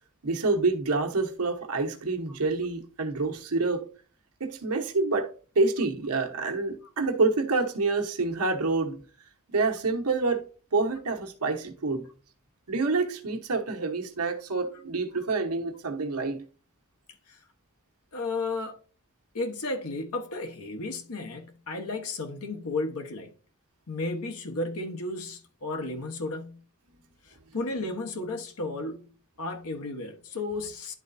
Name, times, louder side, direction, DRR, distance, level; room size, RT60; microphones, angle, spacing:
voice 1, 0.2-3.9 4.4-9.0 9.5-12.0 12.7-16.4, right 3 dB, 85° right, 1.1 m, -27 dB
voice 2, 18.1-18.8 19.3-23.3 23.9-26.6 27.3-29.1 29.4-30.9, left 2 dB, 75° left, 1.2 m, -33 dB
11.0 x 3.9 x 2.7 m
head